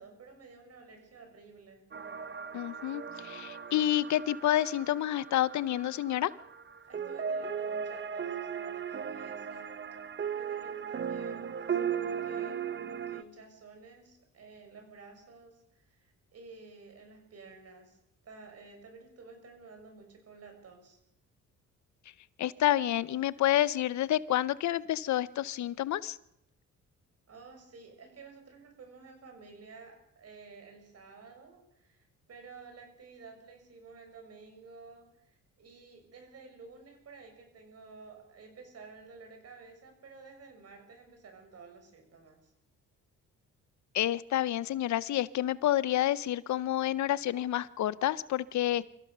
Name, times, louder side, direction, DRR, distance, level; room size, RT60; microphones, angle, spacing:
voice 1, 0.0-1.9 6.9-9.8 10.2-18.0 18.2-21.0 27.3-42.5, right 4 dB, 55° right, 5 dB, 6.7 m, -52 dB
sound 1, 1.9-13.2, right 7 dB, 40° right, 1.2 m, -37 dB
voice 2, 2.5-6.3 22.4-26.2 43.9-48.9, left 13 dB, 70° left, 19 dB, 0.8 m, -29 dB
25.0 x 15.5 x 6.7 m, 0.80 s
cardioid pair, 90°, 30 cm